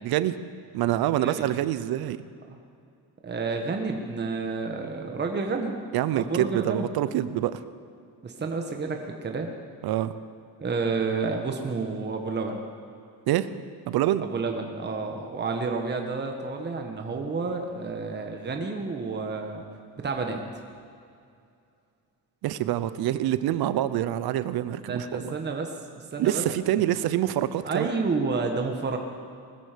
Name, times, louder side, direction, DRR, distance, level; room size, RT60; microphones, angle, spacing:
voice 1, 0.0-0.4 0.7-2.2 5.9-7.6 9.8-10.1 13.3-13.5 13.9-14.3 22.4-25.3 26.2-27.9, right 13 dB, 75° right, 14 dB, 0.8 m, -26 dB
voice 2, 1.1-1.5 2.5-2.6 3.2-5.7 6.1-6.9 8.2-9.5 10.6-12.6 14.2-19.6 20.0-20.4 24.9-25.7 26.1-26.4 27.6-29.0, right 4 dB, 30° right, 3 dB, 1.3 m, -30 dB
20.0 x 14.0 x 5.1 m, 2.5 s
cardioid pair, 125°, 37 cm